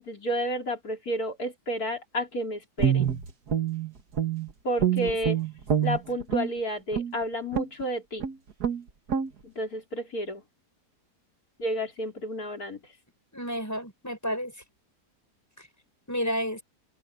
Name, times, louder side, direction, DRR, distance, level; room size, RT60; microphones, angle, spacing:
voice 1, 0.0-3.1 4.6-5.4 5.8-8.3 9.4-10.4 11.6-12.8, equal, 60° left, 4.7 m, -31 dB
Guitar, 2.8-4.5 4.8-6.5 6.9-7.1 7.5-7.8 8.2-8.3 8.6-8.8 9.1-9.3, right 8 dB, 70° right, 2.2 m, -26 dB
voice 2, 13.3-14.5 16.1-16.6, equal, 10° left, 6.7 m, -31 dB
open air
omnidirectional pair, 1.8 m